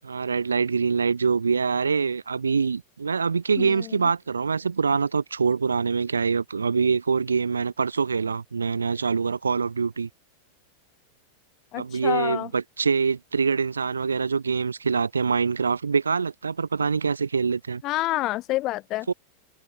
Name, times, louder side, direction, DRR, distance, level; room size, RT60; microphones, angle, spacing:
voice 1, 0.0-10.1 11.7-17.8 19.1-19.2, right 5 dB, 75° right, 0.5 m, -24 dB
voice 2, 3.6-3.9 11.7-12.5 17.8-19.1, left 17 dB, 35° left, 0.7 m, -28 dB
figure-of-eight pair, 90°, 0 cm